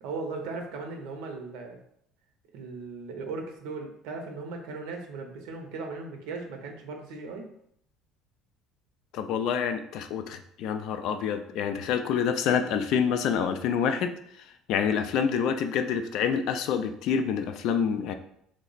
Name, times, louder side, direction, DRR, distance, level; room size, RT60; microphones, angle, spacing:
voice 1, 0.0-1.8 2.5-7.5, right 3 dB, 85° right, 3 dB, 0.6 m, -37 dB
voice 2, 9.1-14.1 14.7-18.1, left 7 dB, 65° left, 8 dB, 0.3 m, -27 dB
3.2 x 2.0 x 3.9 m, 0.71 s
cardioid pair, 130°, 0 cm